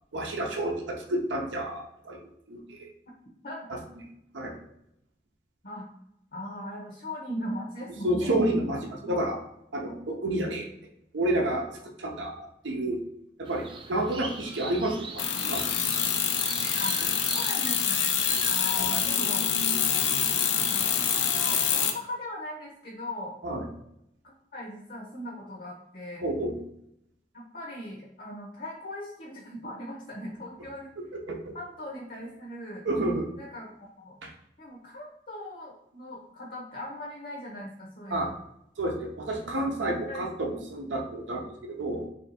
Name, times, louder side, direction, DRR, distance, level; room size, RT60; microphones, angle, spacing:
voice 1, 0.1-2.2 2.5-2.9 3.7-3.8 4.3-4.6 8.0-9.4 9.7-10.7 11.1-11.7 12.0-13.0 13.4-15.6 18.3-18.4 18.9-19.0 23.4-23.6 26.2-26.6 31.0-31.5 32.8-33.3 34.2-34.3 38.1-38.3 38.8-42.1, right 1 dB, 90° right, 1 dB, 0.6 m, -30 dB
voice 2, 3.4-3.8 5.6-5.9 6.3-8.4 8.8-9.1 16.8-17.0 17.3-18.1 18.5-19.5 20.7-23.4 24.2-26.2 27.3-30.9 31.5-32.8 33.4-34.1 34.6-38.3 39.4-40.2, left 1 dB, 50° left, -2 dB, 0.8 m, -39 dB
sound 1, 13.5-18.8, right 4 dB, 30° right, 0.4 m, -40 dB
sound 2, 15.2-21.9, left 8 dB, 85° left, 0.5 m, -26 dB
3.3 x 2.7 x 4.1 m, 0.79 s
head